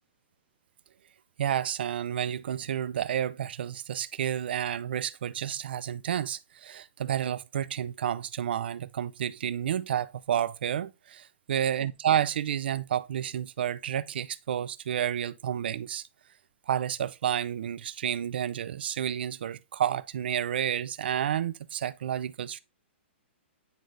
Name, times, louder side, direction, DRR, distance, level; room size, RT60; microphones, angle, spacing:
voice 1, 1.4-16.0 16.7-22.6, right 10 dB, 55° right, 0.5 m, -30 dB
9.4 x 3.9 x 3.3 m
hypercardioid pair, 175°, 7 cm